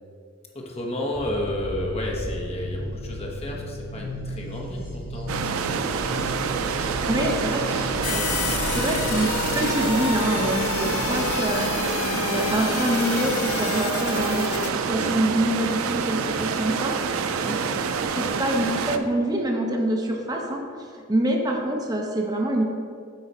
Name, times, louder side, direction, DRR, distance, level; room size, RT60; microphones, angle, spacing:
voice 1, 0.5-7.0 7.6-8.4 8.7-9.2 17.4-18.0, left 1 dB, 30° left, -1 dB, 1.0 m, -33 dB
sound 1, 1.1-16.9 18.0-18.6, left 1 dB, 45° left, 1.7 m, -35 dB
sound 2, 5.3-19.0, right 6 dB, 90° right, 0.4 m, -27 dB
voice 2, 7.0-7.6 8.7-11.7 12.3-14.5 14.7-17.0 17.5-17.6 18.2-22.6, right 1 dB, 20° right, 1 dB, 0.7 m, -25 dB
sound 3, 8.0-14.7, left 8 dB, 90° left, 0.3 m, -30 dB
7.9 x 4.6 x 4.2 m, 2.2 s
head